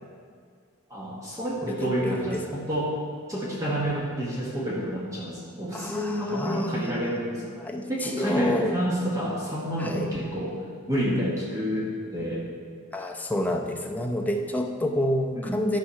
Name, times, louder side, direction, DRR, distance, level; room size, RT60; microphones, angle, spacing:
voice 1, 0.9-2.9 3.3-7.4 7.9-10.5 10.9-12.4 15.3-15.6, equal, 15° right, -5 dB, 1.2 m, -29 dB
voice 2, 1.6-2.4 5.7-7.2 7.6-8.7 9.8-10.1 12.9-15.8, left 1 dB, 5° left, 1 dB, 0.6 m, -28 dB
11.5 x 4.8 x 5.7 m, 2.1 s
head